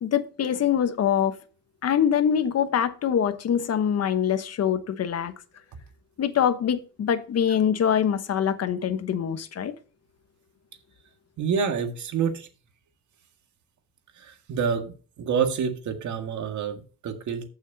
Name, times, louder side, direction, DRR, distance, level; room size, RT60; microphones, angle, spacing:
voice 1, 0.0-1.3 1.8-5.3 6.2-9.7, left 8 dB, 55° left, 1.1 m, -24 dB
voice 2, 11.4-12.5 14.2-17.4, right 6 dB, 70° right, 2.0 m, -28 dB
14.5 x 6.3 x 2.8 m
cardioid pair, 90°, 30 cm